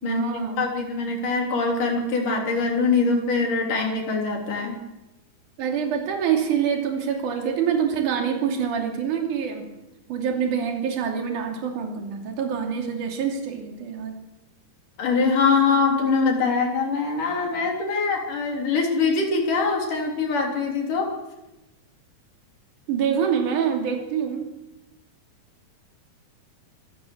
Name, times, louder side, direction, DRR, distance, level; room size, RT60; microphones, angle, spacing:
voice 1, 0.0-0.7 5.6-9.7 10.1-14.2 22.9-24.5, right 7 dB, 60° right, 2 dB, 4.1 m, -26 dB
voice 2, 0.6-4.8 15.0-21.1, left 4 dB, 60° left, 2 dB, 4.8 m, -23 dB
25.5 x 13.0 x 7.9 m, 0.98 s
omnidirectional pair, 4.3 m